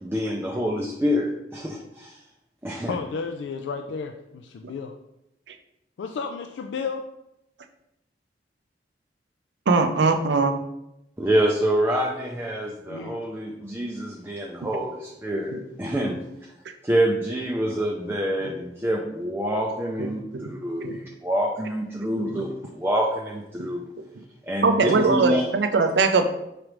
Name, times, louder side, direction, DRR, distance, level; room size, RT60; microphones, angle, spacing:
voice 1, 0.0-2.2 2.6-3.0 11.2-15.5 15.8-16.2 16.8-23.8 24.5-25.5, equal, 15° right, -2 dB, 0.4 m, -26 dB
voice 2, 2.9-4.9 6.0-7.1 12.9-13.2, left 5 dB, 85° left, 5 dB, 0.3 m, -32 dB
voice 3, 9.7-10.6 15.5-15.6 20.3-20.5 20.8-20.9 22.2-22.4 24.6-26.3, right 3 dB, 75° right, 7 dB, 0.5 m, -21 dB
4.9 x 3.2 x 3.0 m, 0.85 s
head